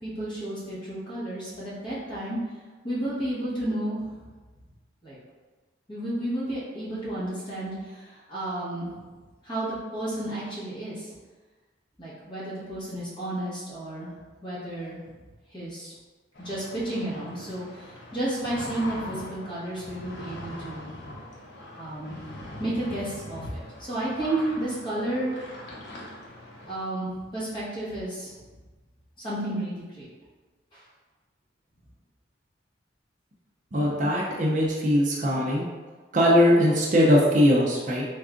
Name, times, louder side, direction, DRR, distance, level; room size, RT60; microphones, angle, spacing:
voice 1, 0.0-2.4 2.8-4.2 5.0-5.2 5.9-8.9 9.4-11.1 12.0-14.1 14.4-15.0 15.5-15.9 16.4-20.9 21.8-22.2 22.6-25.3 26.7-28.3 29.2-30.1 30.7-30.8, right 1 dB, 25° left, -9 dB, 1.2 m, -32 dB
sound 1, 16.3-26.7, left 1 dB, 65° left, 0.8 m, -42 dB
voice 2, 33.7-35.7 36.1-38.0, equal, 40° right, -3 dB, 0.5 m, -21 dB
3.5 x 2.3 x 3.7 m, 1.3 s
head